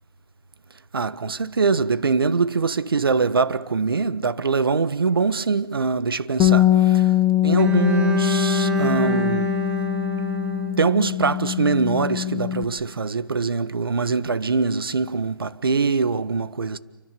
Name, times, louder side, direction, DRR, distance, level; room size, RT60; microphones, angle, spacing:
voice 1, 0.9-7.1 7.4-9.5 10.8-16.8, right 4 dB, 80° right, 1.5 m, -23 dB
Bass guitar, 6.4-12.6, left 14 dB, 15° left, 2.2 m, -22 dB
Bowed string instrument, 7.6-11.6, right 4 dB, 10° right, 2.5 m, -28 dB
29.0 x 25.0 x 7.0 m
hypercardioid pair, 155°, 12 cm